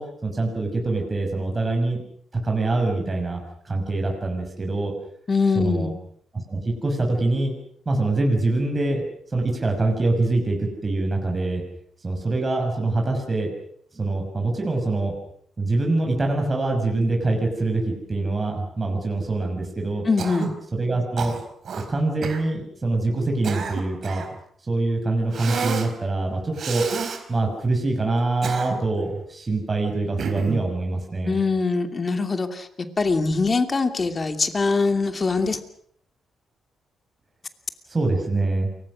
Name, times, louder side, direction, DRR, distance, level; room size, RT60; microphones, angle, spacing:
voice 1, 0.0-2.0 2.3-4.9 5.5-5.9 6.3-7.5 7.9-9.1 9.3-11.6 12.0-13.5 13.9-15.1 15.6-20.1 20.7-21.3 21.9-24.2 24.6-26.9 27.3-31.4 37.9-38.7, right 2 dB, 25° right, 2 dB, 6.1 m, -24 dB
voice 2, 5.3-5.9 20.1-20.5 31.2-35.6, left 4 dB, 30° left, 7 dB, 2.7 m, -23 dB
Cough, 20.2-20.6 21.2-21.9 22.2-22.4 23.2-24.4 25.3-25.9 26.6-27.2 28.2-29.0 30.2-30.7, right 5 dB, 55° right, 4.2 m, -30 dB
28.5 x 24.0 x 6.4 m, 0.65 s
cardioid pair, 130°, 0 cm